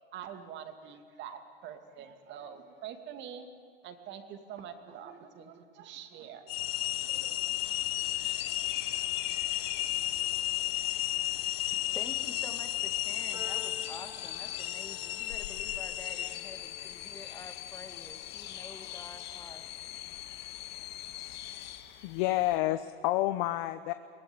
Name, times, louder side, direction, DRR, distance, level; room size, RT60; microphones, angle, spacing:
voice 1, 0.1-3.5 3.8-6.5 7.0-7.4 8.0-8.1 9.8-9.9, right 8 dB, 35° right, 8 dB, 2.5 m, -45 dB
sound 1, 6.5-21.8, left 14 dB, 75° left, 0.9 m, -35 dB
sound 2, 7.6-22.6, left 8 dB, 35° left, 2.5 m, -50 dB
voice 2, 11.9-19.7, left 3 dB, 10° left, 7 dB, 2.0 m, -48 dB
Piano, 13.3-19.8, equal, 15° right, 3.6 m, -54 dB
voice 3, 22.0-23.9, left 16 dB, 50° left, 11 dB, 0.9 m, -29 dB
23.0 x 17.5 x 10.0 m, 2.2 s
supercardioid pair, 130°, 30 cm